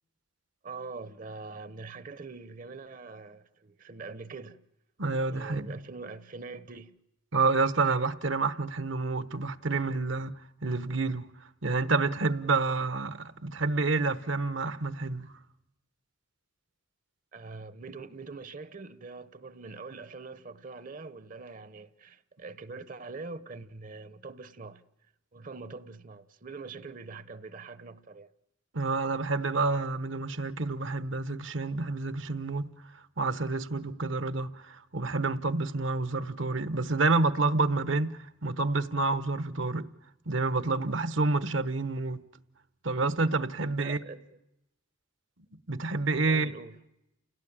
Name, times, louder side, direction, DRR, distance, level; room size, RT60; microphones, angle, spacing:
voice 1, 0.6-4.6 5.3-7.0 17.3-24.8 25.3-28.3 43.8-44.4 46.3-46.7, right 4 dB, 40° right, 0.8 m, -43 dB
voice 2, 5.0-5.7 7.3-10.3 10.6-11.2 11.6-15.3 28.7-32.7 33.2-39.9 40.3-42.2 42.8-44.0 45.7-46.5, right 3 dB, 70° right, 1.1 m, -28 dB
29.5 x 17.0 x 8.8 m
head